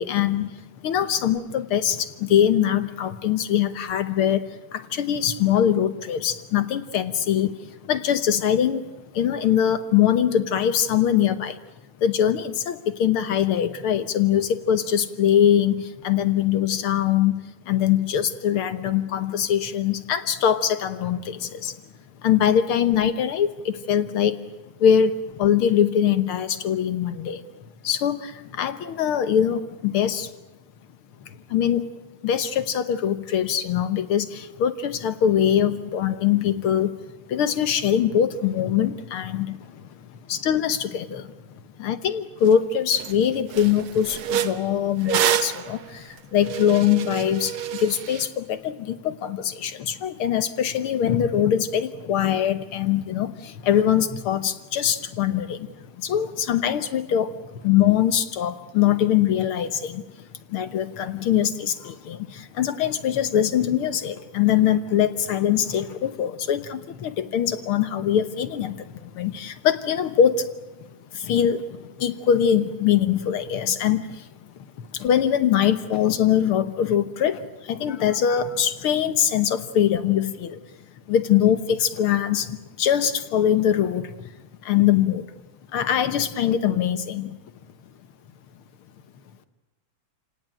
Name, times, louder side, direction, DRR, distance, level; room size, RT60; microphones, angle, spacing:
voice 1, 0.0-11.6 12.0-21.8 22.2-24.4 24.8-27.4 27.8-30.3 31.2-31.9 32.2-37.0 37.3-39.9 40.3-41.3 41.8-60.0 60.5-70.5 71.1-74.3 74.8-80.6 81.1-84.3 84.6-85.3 85.7-87.4, left 9 dB, 65° left, 11 dB, 1.5 m, -23 dB
sound 1, 42.5-42.6 42.9-43.2 43.5-48.3, right 10 dB, 65° right, 1.4 m, -28 dB
28.5 x 18.0 x 8.9 m, 1.1 s
omnidirectional pair, 3.5 m